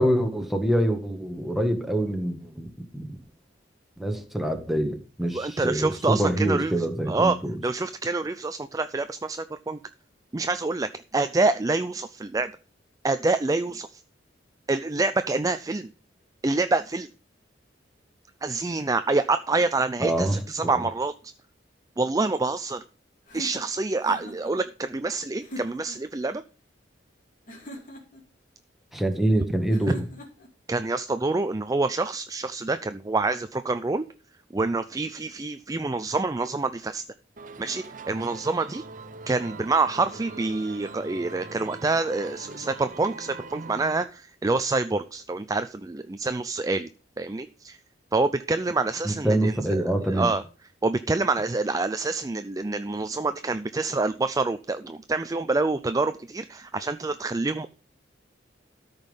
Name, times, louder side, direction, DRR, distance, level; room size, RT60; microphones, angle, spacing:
voice 1, 0.0-2.7 2.9-3.1 4.0-7.5 20.0-20.8 28.9-30.1 49.0-50.3, right 1 dB, ahead, 4 dB, 1.5 m, -25 dB
voice 2, 5.3-7.4 7.6-9.8 10.3-12.5 13.0-14.0 14.7-15.9 16.4-17.1 18.4-21.1 22.0-22.8 23.3-26.4 30.7-34.0 34.5-37.0 37.6-38.8 39.3-46.9 47.2-47.8 48.1-50.4 50.8-57.7, right 3 dB, 20° right, 11 dB, 0.4 m, -27 dB
sound 1, 23.3-24.5 25.4-26.0 27.5-28.2 29.7-30.5, equal, 45° left, 2.7 m, -41 dB
sound 2, 37.4-44.1, right 3 dB, 45° right, 0.8 m, -42 dB
13.5 x 5.3 x 5.4 m, 0.36 s
head